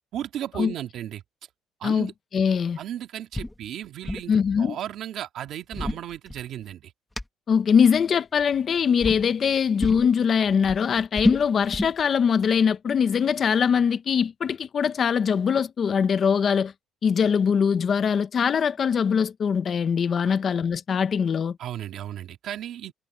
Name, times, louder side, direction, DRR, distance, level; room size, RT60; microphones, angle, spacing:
voice 1, 0.1-1.2 1.8-2.1 2.8-6.9 20.2-20.3 21.6-22.9, right 11 dB, 60° right, 2.5 m, -35 dB
voice 2, 1.8-2.8 4.3-4.8 7.5-16.7 17.0-21.6, left 7 dB, 35° left, 0.9 m, -22 dB
sound 1, 3.3-3.6 3.8-4.3 5.5-6.7 7.2-7.3 8.3-8.7 9.0-9.2 9.8-10.1 10.5-12.0, left 1 dB, 5° left, 2.0 m, -28 dB
cardioid pair, 150°, 0 cm